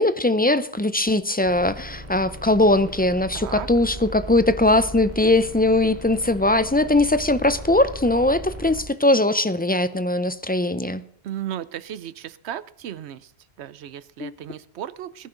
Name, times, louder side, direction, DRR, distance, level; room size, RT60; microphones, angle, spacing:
voice 1, 0.0-11.0 14.2-14.3, left 2 dB, 15° left, 13 dB, 0.4 m, -20 dB
sound 1, 1.4-8.8, right 1 dB, 15° right, 4.2 m, -37 dB
voice 2, 3.3-3.7 11.2-13.3 13.6-15.3, right 11 dB, 90° right, 17 dB, 0.9 m, -35 dB
19.0 x 10.5 x 3.9 m, 0.68 s
omnidirectional pair, 1.1 m